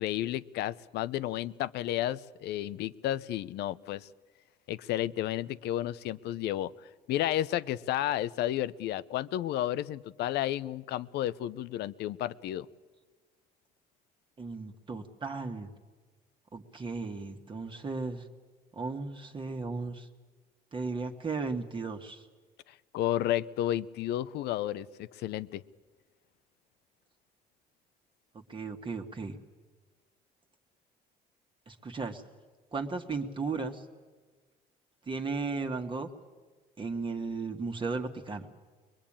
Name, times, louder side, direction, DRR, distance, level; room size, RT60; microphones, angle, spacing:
voice 1, 0.0-4.1 4.7-6.7 7.1-12.7 22.9-25.6, left 13 dB, 75° left, 18 dB, 0.7 m, -32 dB
voice 2, 14.4-15.7 16.5-18.2 18.7-20.1 20.7-22.2 28.3-29.4 31.7-32.2 32.7-33.8 35.1-36.1 36.8-38.5, right 4 dB, 30° right, 4 dB, 1.6 m, -35 dB
22.5 x 22.0 x 8.8 m, 1.4 s
cardioid pair, 110°, 17 cm